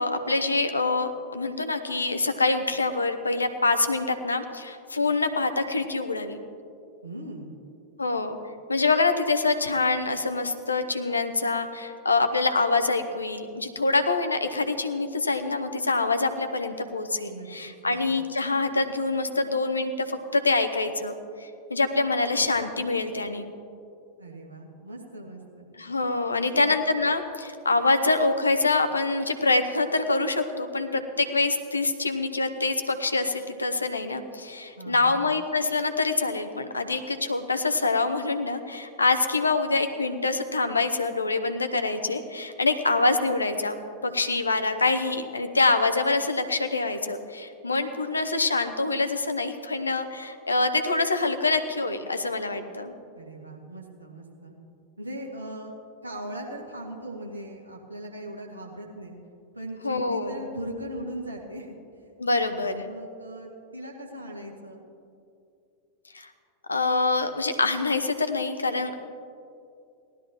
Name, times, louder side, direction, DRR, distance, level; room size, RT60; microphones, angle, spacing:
voice 1, 0.0-6.4 8.0-8.4 8.7-21.1 21.4-23.5 25.8-43.7 44.0-52.9 59.8-60.4 62.2-62.8 66.1-66.3 66.7-68.9, left 3 dB, 80° left, 9 dB, 0.8 m, -25 dB
voice 2, 7.0-7.5 17.3-18.0 24.2-25.7 26.3-26.7 34.8-35.3 53.2-54.5 55.0-55.7 56.0-59.1 59.5-61.7 62.3-64.9, right 1 dB, 80° right, -2 dB, 2.0 m, -39 dB
18.5 x 12.0 x 3.0 m, 2.5 s
figure-of-eight pair, 90°, 0 cm